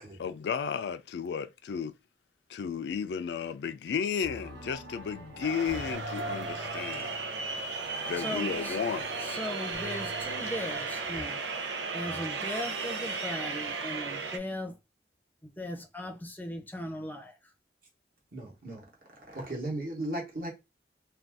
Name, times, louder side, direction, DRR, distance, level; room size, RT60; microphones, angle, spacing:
voice 1, 0.0-1.9 2.5-7.2 7.7-7.8 8.1-9.1, left 7 dB, 70° left, 0.3 m, -33 dB
sound 1, 4.2-11.2, left 1 dB, 70° right, 1.1 m, -46 dB
sound 2, 5.4-14.4, right 4 dB, 90° right, 0.6 m, -35 dB
voice 2, 8.1-8.8 9.2-11.4 11.9-14.8 15.4-17.5, left 1 dB, 10° left, 0.5 m, -38 dB
voice 3, 18.3-18.8 19.3-20.5, right 1 dB, 50° right, 1.0 m, -36 dB
2.6 x 2.3 x 3.3 m
head